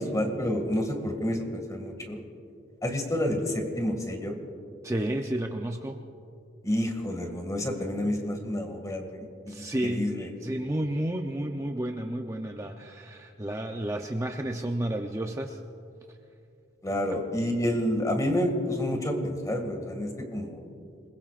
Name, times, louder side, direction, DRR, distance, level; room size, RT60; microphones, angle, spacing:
voice 1, 0.0-2.2 2.8-4.3 6.6-10.3 16.8-20.6, left 1 dB, 20° left, 3 dB, 2.1 m, -29 dB
voice 2, 4.8-6.0 9.5-15.6, right 1 dB, 15° right, 3 dB, 0.6 m, -31 dB
27.5 x 21.0 x 2.5 m, 2.6 s
head